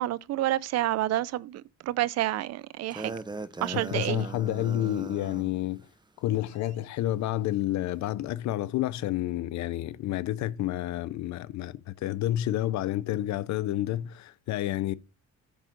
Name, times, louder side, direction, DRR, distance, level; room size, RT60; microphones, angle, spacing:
voice 1, 0.0-3.2 3.6-4.3, right 14 dB, 60° right, 0.5 m, -29 dB
sound 1, 2.9-5.5, right 3 dB, 15° right, 0.7 m, -39 dB
voice 2, 3.7-5.9 6.2-14.9, left 13 dB, 70° left, 0.7 m, -30 dB
8.6 x 3.7 x 6.5 m
cardioid pair, 95°, 29 cm